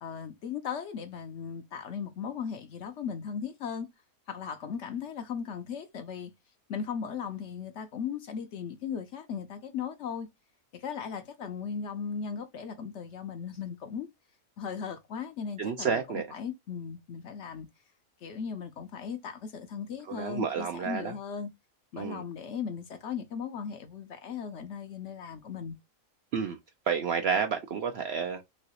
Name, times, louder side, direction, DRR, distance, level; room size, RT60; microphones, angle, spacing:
voice 1, 0.0-3.9 4.3-6.3 6.7-10.3 10.7-14.1 14.6-17.7 18.2-21.5 21.9-25.8, left 6 dB, 65° left, 0.8 m, -37 dB
voice 2, 15.6-16.3 20.1-21.1 22.0-22.2 26.3-26.6 26.9-28.4, right 6 dB, 65° right, 0.6 m, -30 dB
3.1 x 2.9 x 2.7 m
omnidirectional pair, 1.5 m